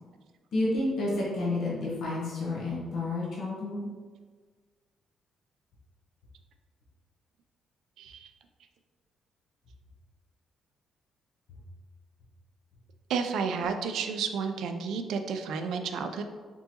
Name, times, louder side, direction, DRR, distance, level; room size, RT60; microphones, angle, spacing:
voice 1, 0.5-3.9, left 2 dB, 55° left, -5 dB, 1.0 m, -30 dB
voice 2, 8.0-8.3 13.1-16.2, right 5 dB, 70° right, 7 dB, 0.4 m, -31 dB
4.5 x 3.8 x 2.8 m, 1.5 s
cardioid pair, 180°, 0 cm